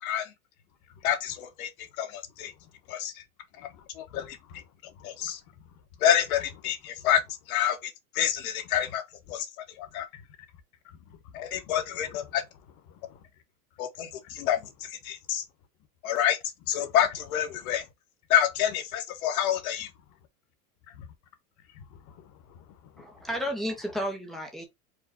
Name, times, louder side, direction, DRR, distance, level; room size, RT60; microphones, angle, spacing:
voice 1, 0.0-0.3 1.0-1.7 2.0-2.5 2.9-3.2 3.9-4.4 5.0-5.4 6.0-7.2 7.5-9.0 9.3-9.5 9.8-10.1 11.3-12.4 13.8-15.4 16.0-16.4 16.7-17.8 18.3-19.9, left 10 dB, 65° left, 1.1 m, -27 dB
voice 2, 2.5-2.9 3.6-5.8 7.0-7.1 8.7-8.9 9.9-10.3 10.8-12.2 12.9-13.3 14.2-14.5 16.8-17.0 17.6-17.7 20.9-21.1 21.6-23.3, left 8 dB, 40° left, 1.1 m, -52 dB
voice 3, 23.0-24.6, equal, ahead, 0.5 m, -32 dB
4.7 x 2.2 x 4.2 m
supercardioid pair, 165°, 45 cm